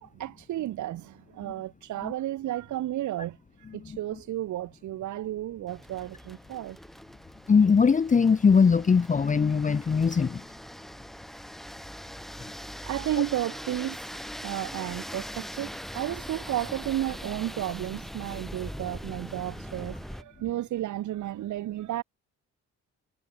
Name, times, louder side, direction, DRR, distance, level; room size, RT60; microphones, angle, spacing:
voice 1, 0.0-3.4 3.7-6.8 12.8-22.0, right 14 dB, 70° right, 1.2 m, -33 dB
sound 1, 5.7-20.2, equal, ahead, 4.2 m, -41 dB
voice 2, 7.5-10.4, left 5 dB, 25° left, 0.8 m, -21 dB
cardioid pair, 90°, 30 cm